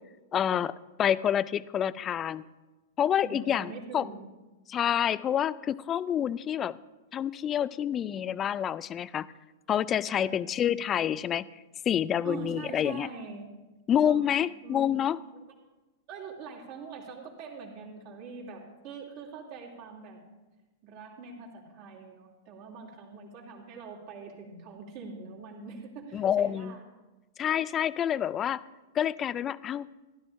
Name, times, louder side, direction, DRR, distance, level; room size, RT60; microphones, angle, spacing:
voice 1, 0.3-0.7 1.0-2.4 3.0-4.1 4.7-6.8 7.1-9.3 9.7-11.5 11.9-13.1 13.9-15.2 26.1-26.8 27.4-28.6 28.9-29.9, left 9 dB, 30° left, 18 dB, 0.3 m, -28 dB
voice 2, 3.2-4.2 10.2-10.4 12.2-13.5 14.0-14.2 14.6-15.0 16.1-20.2 20.8-26.8, right 5 dB, 50° right, -2 dB, 2.7 m, -43 dB
15.5 x 11.5 x 2.6 m, 1.1 s
hypercardioid pair, 105°, 0 cm